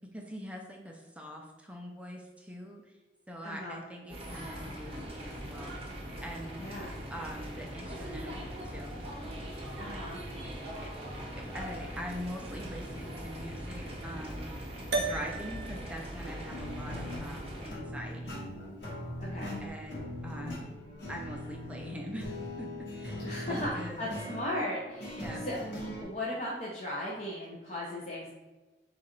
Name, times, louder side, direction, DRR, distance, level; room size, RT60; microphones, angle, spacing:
voice 1, 0.1-2.8 3.3-5.8 6.2-6.6 7.1-9.0 9.9-10.1 10.8-10.9 11.4-14.5 15.0-18.5 19.6-20.7 21.1-24.0 25.2-25.5, equal, 5° right, 1 dB, 0.4 m, -43 dB
voice 2, 3.4-3.8 6.6-6.9 9.8-10.2 19.2-19.6 23.2-25.6 26.0-28.3, left 1 dB, 40° left, -5 dB, 0.6 m, -37 dB
sound 1, 4.1-17.7, equal, 35° right, 0.8 m, -41 dB
sound 2, 14.9-19.5, right 3 dB, 85° right, 0.6 m, -39 dB
sound 3, 16.5-26.0, left 1 dB, 85° left, 1.1 m, -40 dB
4.0 x 2.4 x 4.3 m, 1.2 s
head